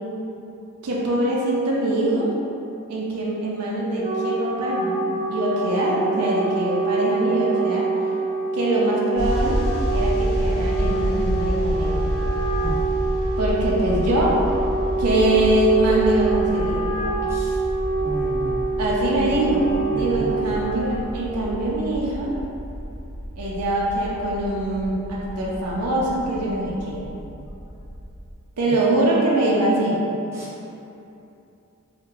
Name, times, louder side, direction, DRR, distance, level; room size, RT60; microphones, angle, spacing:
voice 1, 0.8-2.3 2.9-7.9 8.5-9.6 9.9-12.0 13.4-14.4 15.0-16.8 18.8-19.6 19.9-22.3 23.4-27.0 28.6-30.1, right 1 dB, 85° right, -4 dB, 0.6 m, -23 dB
Wind instrument woodwind instrument, 3.7-21.2, right 3 dB, 60° right, 0.9 m, -26 dB
sound 1, 9.2-28.3, equal, 45° left, 0.6 m, -29 dB
voice 2, 18.0-18.5 19.9-20.5 30.3-30.5, equal, 10° right, -10 dB, 0.7 m, -33 dB
2.7 x 2.2 x 3.7 m, 2.8 s
head